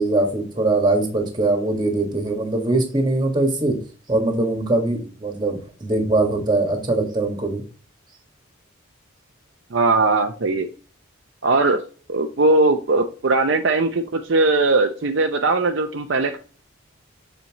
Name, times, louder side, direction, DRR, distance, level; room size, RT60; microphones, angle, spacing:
voice 1, 0.0-3.8 4.1-7.6, right 2 dB, 20° right, 3 dB, 1.7 m, -21 dB
voice 2, 9.7-10.7 11.4-11.8 12.1-16.4, right 3 dB, 60° right, 5 dB, 0.6 m, -19 dB
7.0 x 4.6 x 3.0 m, 0.38 s
head